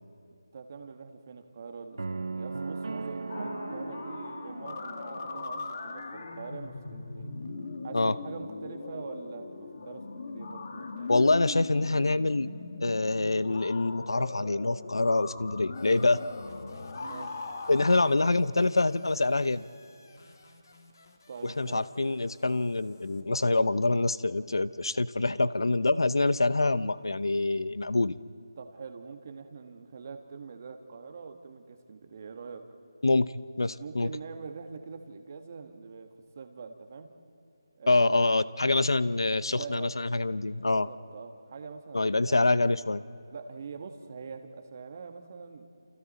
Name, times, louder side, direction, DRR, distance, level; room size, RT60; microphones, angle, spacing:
voice 1, 0.5-7.3 7.8-11.1 17.0-17.4 21.3-21.8 28.6-32.6 33.8-37.1 37.8-38.4 39.5-40.0 40.6-42.7 43.3-45.7, right 5 dB, 35° right, 6 dB, 1.4 m, -44 dB
sound 1, 2.0-6.1, right 3 dB, 65° right, 0.8 m, -38 dB
sound 2, 3.3-18.1, left 3 dB, 40° left, 1.6 m, -40 dB
voice 2, 11.1-12.5 12.8-16.2 17.7-19.6 21.4-28.2 33.0-33.3 33.6-34.1 37.9-40.9 41.9-43.0, left 2 dB, 80° left, 16 dB, 0.7 m, -25 dB
sound 3, 15.7-23.2, left 3 dB, 60° left, 2.6 m, -58 dB
29.0 x 28.5 x 4.2 m, 2.7 s
figure-of-eight pair, 170°, 2 cm